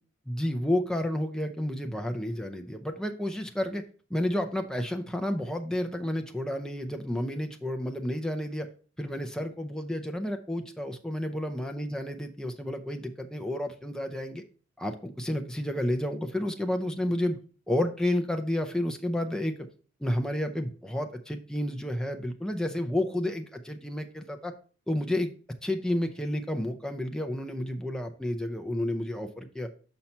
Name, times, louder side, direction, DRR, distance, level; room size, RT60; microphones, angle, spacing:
voice 1, 0.3-3.8 4.1-8.7 9.0-14.4 14.8-17.4 17.7-19.6 20.0-24.5 24.9-25.3 25.6-29.7, left 1 dB, 5° left, 5 dB, 0.5 m, -31 dB
5.8 x 5.4 x 4.3 m, 0.40 s
head